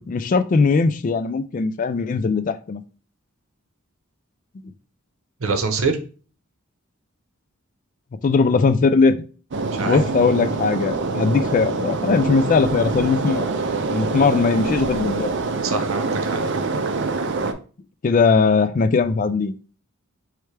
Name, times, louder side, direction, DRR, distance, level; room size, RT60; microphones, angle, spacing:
voice 1, 0.1-2.8 8.2-9.3 9.8-13.5 13.9-15.3 18.0-19.5, left 4 dB, 40° left, 12 dB, 0.3 m, -19 dB
voice 2, 5.4-6.0 9.7-10.0 14.2-14.3 15.6-16.7, right 4 dB, 75° right, 7 dB, 0.8 m, -25 dB
sound 1, 9.5-17.5, right 3 dB, 55° right, 0.5 m, -25 dB
4.6 x 3.2 x 3.3 m, 0.38 s
head